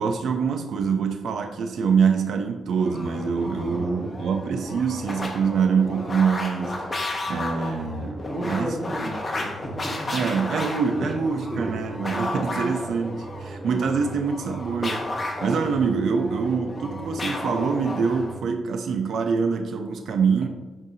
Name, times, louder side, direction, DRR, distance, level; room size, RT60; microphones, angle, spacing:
voice 1, 0.0-6.9 7.3-8.8 10.1-20.5, right 5 dB, 75° right, 0.6 m, -25 dB
sound 1, 2.7-18.4, left 1 dB, 25° left, 1.1 m, -33 dB
voice 2, 3.6-4.1 8.2-11.2 11.5-11.7, equal, 5° right, 1.6 m, -34 dB
8.2 x 5.3 x 2.8 m
wide cardioid pair, 140°, 0 cm